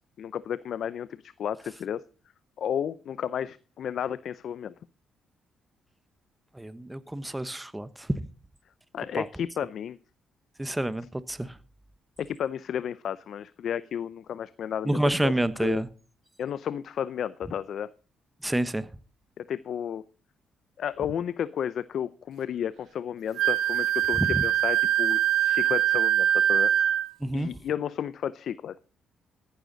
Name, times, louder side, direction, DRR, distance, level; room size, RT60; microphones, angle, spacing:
voice 1, 0.2-2.0 2.6-4.7 8.9-10.0 12.2-15.3 15.6-15.8 16.4-17.9 19.4-20.0 20.8-26.7 27.3-28.8, left 9 dB, 65° left, 0.6 m, -32 dB
voice 2, 6.5-8.3 9.1-9.3 10.6-11.6 14.8-15.9 18.4-18.9 24.2-24.4 27.2-27.5, right 1 dB, 10° right, 1.0 m, -28 dB
Wind instrument woodwind instrument, 23.4-27.1, right 11 dB, 75° right, 0.8 m, -23 dB
14.5 x 11.5 x 4.0 m
cardioid pair, 90°, 0 cm